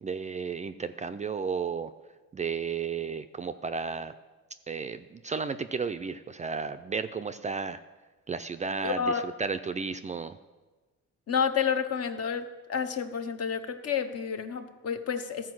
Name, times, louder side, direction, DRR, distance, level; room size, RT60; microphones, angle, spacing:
voice 1, 0.0-1.9 2.3-4.1 4.7-7.8 8.3-10.4, right 5 dB, 25° right, 9 dB, 0.3 m, -33 dB
voice 2, 8.8-9.2 11.3-15.5, left 6 dB, 55° left, 8 dB, 0.8 m, -30 dB
13.5 x 4.6 x 6.0 m, 1.3 s
cardioid pair, 90°, 30 cm